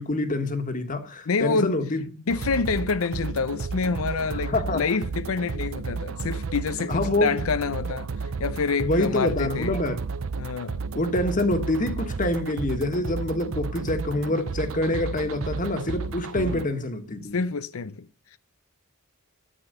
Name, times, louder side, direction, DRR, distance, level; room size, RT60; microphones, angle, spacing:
voice 1, 0.0-2.0 4.3-4.8 6.9-7.4 8.8-10.0 10.9-17.4, left 1 dB, 40° left, 1.7 m, -26 dB
voice 2, 1.3-1.7 2.3-9.8 10.4-10.8 16.4-16.6 17.2-18.4, left 5 dB, 90° left, 0.6 m, -27 dB
sound 1, 2.3-16.7, right 4 dB, 75° right, 0.6 m, -32 dB
13.0 x 9.1 x 6.7 m
head